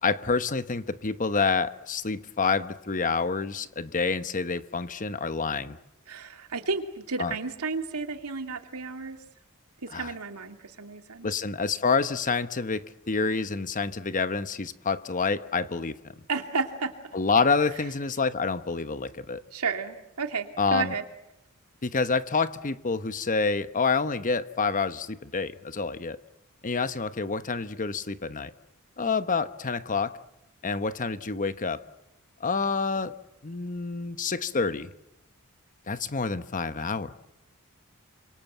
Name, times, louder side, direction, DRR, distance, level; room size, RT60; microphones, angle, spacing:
voice 1, 0.0-5.8 7.2-7.3 9.9-10.1 11.2-16.1 17.1-19.4 20.6-20.9 21.8-26.2 26.6-28.5 29.0-30.2 30.6-31.8 32.4-33.2 33.4-34.9 35.9-37.1, left 4 dB, 35° left, 1.0 m, -28 dB
voice 2, 6.1-9.2 9.8-11.3 16.3-16.9 19.5-21.0, right 4 dB, 80° right, 2.5 m, -32 dB
27.5 x 25.5 x 8.1 m
head